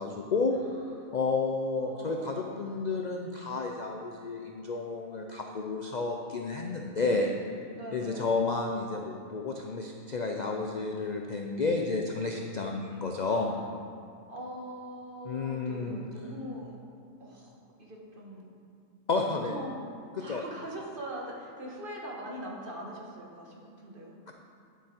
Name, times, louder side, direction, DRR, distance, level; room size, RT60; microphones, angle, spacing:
voice 1, 0.0-0.6 1.1-7.3 7.9-13.5 15.2-16.0 19.1-19.6 20.1-20.4 24.3-24.4, left 3 dB, 50° left, 2 dB, 0.5 m, -31 dB
voice 2, 0.5-1.1 1.7-2.6 7.7-8.3 13.3-13.7 14.3-16.8 17.2-18.5 19.3-19.8 20.2-24.2, right 1 dB, 40° right, -2 dB, 1.6 m, -42 dB
10.0 x 8.2 x 4.4 m, 2.4 s
omnidirectional pair, 1.4 m